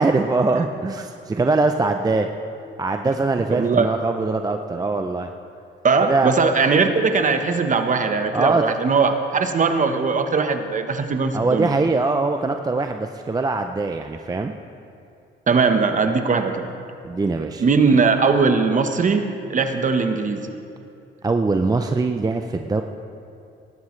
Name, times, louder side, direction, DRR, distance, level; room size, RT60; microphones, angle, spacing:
voice 1, 0.0-2.3 2.8-5.3 6.1-6.3 8.3-8.6 11.3-14.5 17.0-17.6 21.2-22.8, right 3 dB, 20° right, 6 dB, 0.5 m, -22 dB
voice 2, 3.5-3.9 5.8-11.7 15.5-16.7 17.6-20.5, right 4 dB, 40° right, 7 dB, 1.1 m, -20 dB
19.0 x 11.5 x 3.2 m, 2.5 s
cardioid pair, 90°, 20 cm